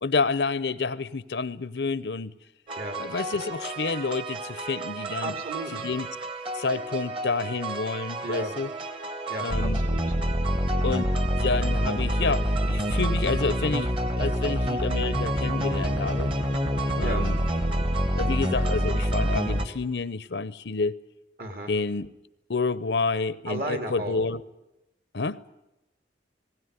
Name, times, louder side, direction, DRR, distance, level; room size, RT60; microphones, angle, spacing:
voice 1, 0.0-2.3 3.0-5.3 5.8-6.1 6.5-8.7 9.4-9.8 10.8-11.1 11.4-16.3 16.9-17.4 18.1-20.9 21.7-22.1 22.5-24.4 25.1-25.4, left 4 dB, 75° left, 0.7 m, -29 dB
sound 1, 2.7-19.7, equal, 30° right, 1.4 m, -27 dB
voice 2, 5.2-5.9 8.2-8.5 9.3-10.0 17.0-17.3 21.4-21.7 23.4-24.2, right 1 dB, 55° right, 2.8 m, -34 dB
19.5 x 17.0 x 9.6 m
head